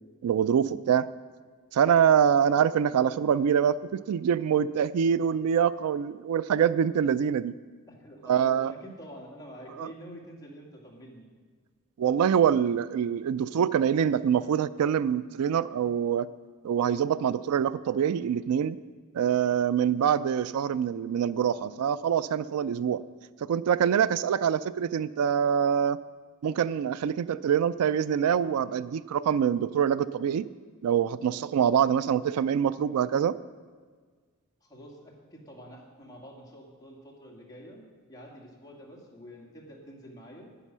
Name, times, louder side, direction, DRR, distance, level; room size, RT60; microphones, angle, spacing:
voice 1, 0.2-1.1 1.7-7.5 8.3-8.7 9.8-9.9 12.0-16.3 16.6-18.8 19.1-23.0 23.4-26.0 26.4-30.5 30.8-33.4, right 8 dB, 85° right, 17 dB, 0.3 m, -25 dB
voice 2, 7.9-11.3 32.0-32.5 34.6-37.8 38.1-40.5, equal, 15° left, -3 dB, 2.0 m, -47 dB
9.8 x 9.1 x 6.1 m, 1.5 s
head